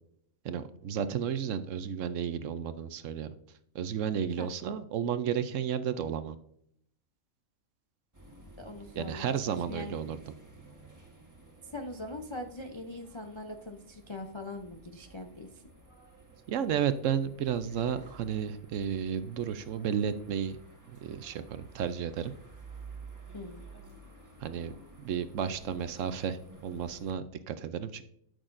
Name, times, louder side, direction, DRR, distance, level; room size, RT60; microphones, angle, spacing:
voice 1, 0.4-3.3 3.7-6.4 9.0-10.2 16.5-20.6 20.9-22.3 24.4-24.7 25.0-28.0, right 8 dB, 70° right, 12 dB, 0.9 m, -32 dB
sound 1, 8.1-27.1, right 3 dB, 15° right, 1.3 m, -53 dB
voice 2, 8.6-10.0 11.6-15.6 23.3-23.6, left 2 dB, 40° left, 3 dB, 0.4 m, -42 dB
12.5 x 6.5 x 2.6 m, 0.70 s
omnidirectional pair, 1.5 m